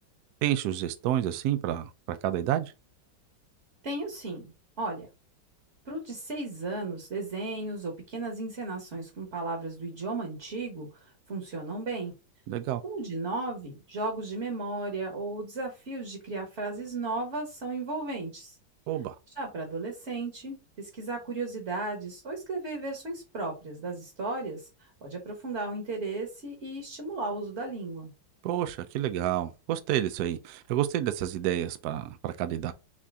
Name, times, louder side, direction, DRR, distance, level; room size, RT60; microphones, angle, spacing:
voice 1, 0.4-2.7 12.5-12.8 18.9-19.1 28.4-32.7, right 12 dB, 70° right, 0.9 m, -29 dB
voice 2, 3.8-4.5 4.8-5.1 5.8-10.9 11.3-12.1 12.8-18.6 19.3-28.1, right 2 dB, 40° right, 1.3 m, -35 dB
5.0 x 2.7 x 3.5 m
omnidirectional pair, 2.1 m